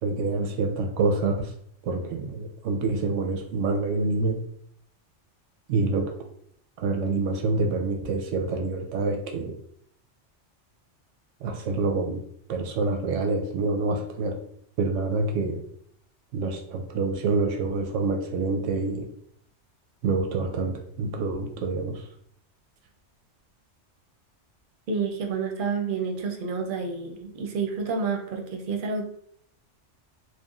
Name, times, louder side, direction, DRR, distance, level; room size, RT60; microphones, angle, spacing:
voice 1, 0.0-1.5 1.8-4.4 5.7-6.1 6.8-9.5 11.4-12.2 12.5-14.3 14.8-15.6 16.3-19.1 20.0-22.0, right 3 dB, 90° right, 4 dB, 0.9 m, -27 dB
voice 2, 24.9-29.0, right 5 dB, 60° right, 3 dB, 0.6 m, -29 dB
3.0 x 2.3 x 2.4 m, 0.66 s
omnidirectional pair, 1.2 m